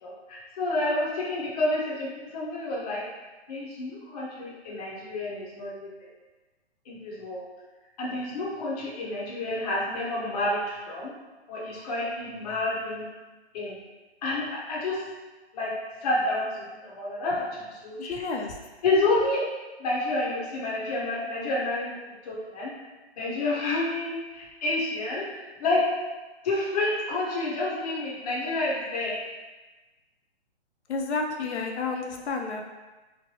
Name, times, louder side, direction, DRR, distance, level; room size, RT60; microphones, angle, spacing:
voice 1, 0.0-3.0 3.5-6.1 6.9-7.4 8.0-11.1 11.5-13.1 13.5-13.8 14.2-15.0 15.5-15.7 16.0-18.1 18.8-19.4 19.8-22.0 22.2-22.7 23.2-25.2 25.6-25.8 26.4-29.2, left 2 dB, 35° left, -5 dB, 0.7 m, -29 dB
voice 2, 18.0-18.6 30.9-32.6, left 4 dB, 75° left, 2 dB, 0.6 m, -30 dB
3.1 x 2.1 x 2.8 m, 1.2 s
hypercardioid pair, 155°, 34 cm